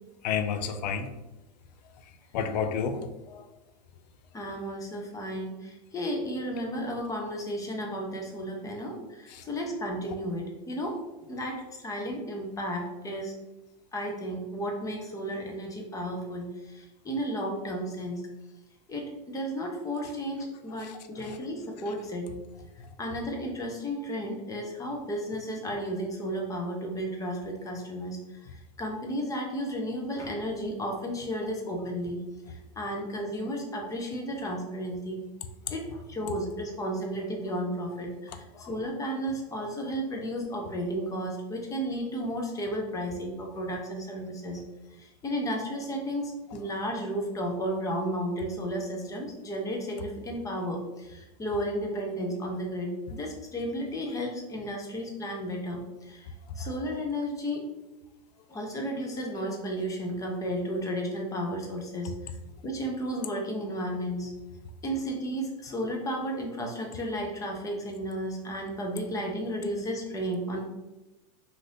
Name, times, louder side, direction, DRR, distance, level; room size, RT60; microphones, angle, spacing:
voice 1, 0.2-1.1 2.3-3.5 9.3-9.4 20.8-21.4 21.9-22.0 22.8-22.9 38.3-38.7 56.6-56.7, left 6 dB, 80° left, 8 dB, 0.4 m, -32 dB
voice 2, 4.3-11.0 11.3-13.3 13.9-18.2 18.9-22.3 23.0-28.4 28.8-32.2 32.5-35.2 35.7-44.6 45.0-56.3 56.6-57.6 58.5-62.1 62.6-64.3 64.8-70.6, equal, 15° left, 1 dB, 0.6 m, -33 dB
2.6 x 2.5 x 3.3 m, 1.0 s
hypercardioid pair, 120°, 21 cm